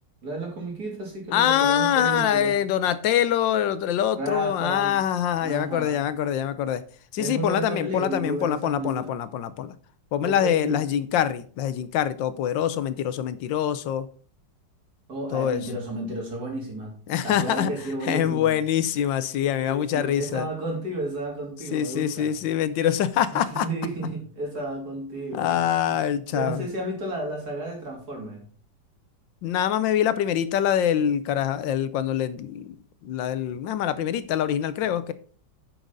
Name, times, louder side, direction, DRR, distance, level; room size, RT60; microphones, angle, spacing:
voice 1, 0.2-2.6 4.2-5.0 5.4-6.0 7.2-9.1 10.2-10.9 15.1-17.0 17.2-18.6 19.6-22.3 23.3-25.8 26.3-28.4 34.7-34.9, right 2 dB, 55° right, 0 dB, 3.3 m, -32 dB
voice 2, 1.3-6.8 7.1-9.7 10.1-14.1 15.3-15.6 17.1-17.7 18.0-20.5 21.7-23.7 24.0-24.1 25.3-26.6 29.4-35.1, left 10 dB, 80° left, 14 dB, 1.4 m, -24 dB
9.1 x 6.3 x 3.9 m, 0.43 s
omnidirectional pair, 2.0 m